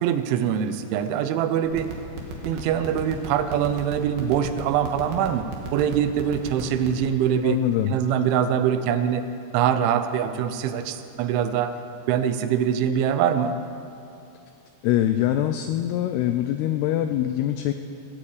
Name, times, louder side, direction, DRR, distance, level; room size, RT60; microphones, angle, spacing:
voice 1, 0.0-1.9 2.5-7.6 7.9-9.3 9.5-11.8 12.1-13.6, right 9 dB, 90° right, 10 dB, 3.2 m, -23 dB
sound 1, 1.6-7.0, right 4 dB, 60° right, 3.3 m, -34 dB
voice 2, 7.4-7.9 14.8-17.7, left 12 dB, 85° left, 8 dB, 2.3 m, -23 dB
17.5 x 8.7 x 8.6 m, 2.7 s
omnidirectional pair, 5.3 m